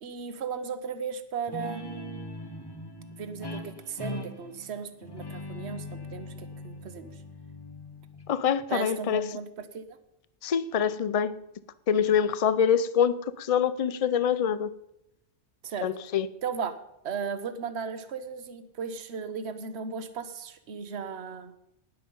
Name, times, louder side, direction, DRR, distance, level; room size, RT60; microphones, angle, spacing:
voice 1, 0.0-2.3 3.2-5.8 6.1-7.1 8.7-10.0 15.6-15.9 16.4-16.8 17.0-21.5, right 6 dB, 60° right, 10 dB, 1.3 m, -36 dB
Guitar, 1.5-8.6, left 1 dB, 20° left, 1.1 m, -40 dB
voice 2, 8.3-9.2 10.4-11.4 11.9-14.7 15.8-16.3, left 8 dB, 40° left, 15 dB, 0.5 m, -25 dB
19.0 x 7.5 x 5.4 m, 0.84 s
omnidirectional pair, 1.3 m